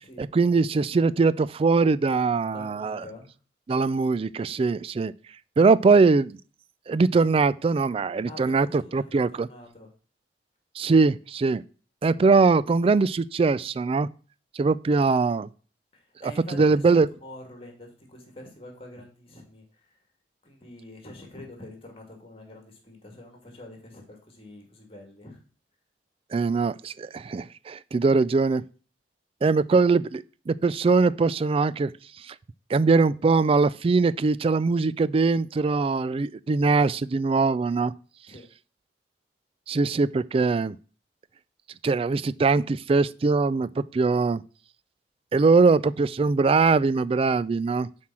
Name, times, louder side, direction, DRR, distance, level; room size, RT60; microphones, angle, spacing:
voice 1, 0.2-3.0 3.7-5.1 5.6-6.4 6.9-9.5 10.8-11.6 12.0-14.1 14.6-15.5 16.2-17.1 26.3-28.6 29.4-31.9 32.7-37.9 39.7-40.8 41.8-44.4 45.3-47.9, right 4 dB, 35° right, 0.3 m, -22 dB
voice 2, 2.5-3.3 8.3-9.9 15.9-19.6 20.4-25.4 38.3-38.5, left 1 dB, 35° left, 2.4 m, -45 dB
7.3 x 4.5 x 6.1 m
head